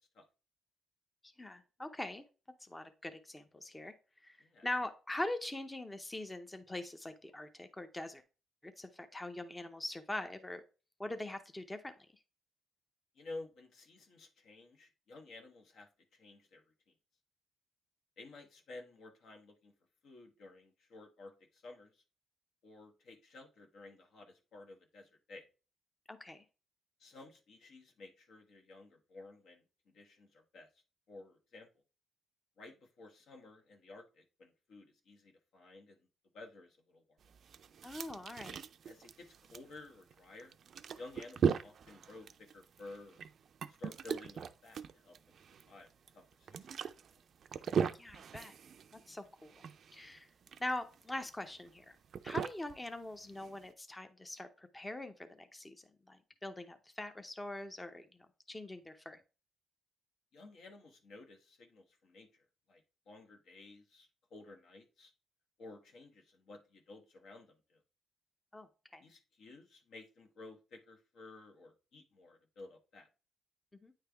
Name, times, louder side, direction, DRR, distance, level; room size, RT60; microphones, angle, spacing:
voice 1, 1.2-2.2 2.6-4.4 4.6-8.2 8.6-10.6 11.0-11.9 26.1-26.4 37.8-38.6 47.9-48.6 48.9-49.5 49.9-50.3 50.6-52.0 52.2-58.1 58.5-59.2 68.5-68.7 68.9-69.0 73.8-73.9, left 1 dB, 15° left, 8 dB, 0.6 m, -43 dB
voice 2, 13.1-16.9 18.2-19.7 20.0-22.0 22.6-25.4 27.0-30.7 31.1-31.7 32.6-36.1 36.3-37.2 38.8-40.6 41.0-43.2 43.8-45.9 46.1-46.8 47.1-47.2 60.3-65.1 65.6-67.8 69.0-73.1, left 2 dB, 70° left, 3 dB, 1.1 m, -54 dB
sound 1, 37.2-53.7, right 7 dB, 55° right, 0.4 m, -39 dB
9.1 x 3.3 x 3.4 m, 0.34 s
cardioid pair, 90°, 0 cm